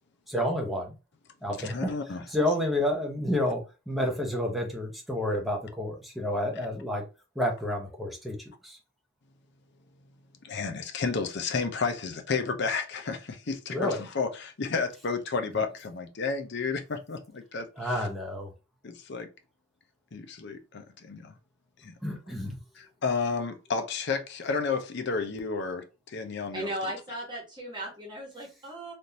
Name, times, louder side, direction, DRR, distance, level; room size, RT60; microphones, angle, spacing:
voice 1, 0.3-0.9 1.4-1.9 2.3-7.0 7.3-8.8 13.7-14.0 17.8-18.5 22.0-22.6, left 1 dB, ahead, 0.8 m, -30 dB
voice 2, 1.6-2.2 10.4-17.7 17.9-18.0 18.8-19.3 20.1-21.3 21.8-21.9 22.8-26.9, left 4 dB, 55° left, 0.6 m, -32 dB
voice 3, 26.5-28.9, right 1 dB, 20° right, 1.2 m, -36 dB
3.5 x 2.5 x 2.8 m
head